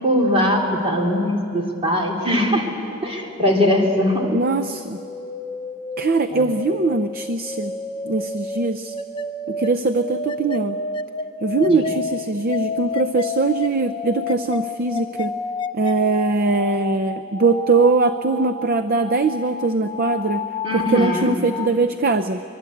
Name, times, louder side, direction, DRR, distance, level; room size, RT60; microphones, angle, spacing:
voice 1, 0.0-2.7 3.0-4.3 6.3-6.5 11.7-11.9 20.6-21.3, left 1 dB, 25° right, 0 dB, 3.4 m, -21 dB
sound 1, 2.5-21.7, left 3 dB, 20° left, 0.6 m, -31 dB
voice 2, 4.3-5.0 6.0-7.7 8.0-8.9 9.5-10.8 11.4-15.3 15.7-20.4 20.7-22.4, right 3 dB, 40° right, 10 dB, 0.6 m, -21 dB
24.0 x 23.0 x 8.6 m, 2.7 s
head